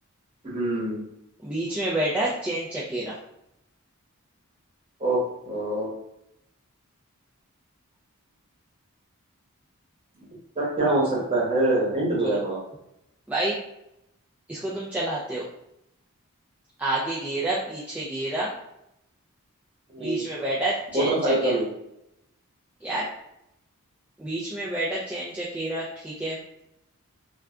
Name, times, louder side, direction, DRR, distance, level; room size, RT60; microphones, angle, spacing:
voice 1, 0.4-1.0 5.0-5.9 10.6-12.6 19.9-20.2 20.9-21.7, right 1 dB, 25° right, -6 dB, 1.0 m, -24 dB
voice 2, 1.4-3.1 12.2-12.3 13.3-13.6 14.5-15.5 16.8-18.5 20.0-21.6 22.8-23.1 24.2-26.4, right 1 dB, 5° right, -7 dB, 0.3 m, -29 dB
2.3 x 2.2 x 3.6 m, 0.83 s
head